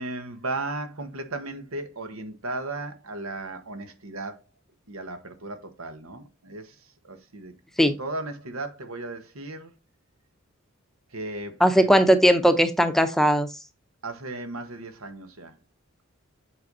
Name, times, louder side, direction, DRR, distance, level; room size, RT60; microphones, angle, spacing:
voice 1, 0.0-4.4 4.9-7.5 7.8-9.7 11.1-12.0 14.0-15.6, right 2 dB, 90° right, 1.5 m, -36 dB
voice 2, 11.6-13.5, equal, ahead, 0.7 m, -18 dB
7.9 x 5.2 x 4.0 m
head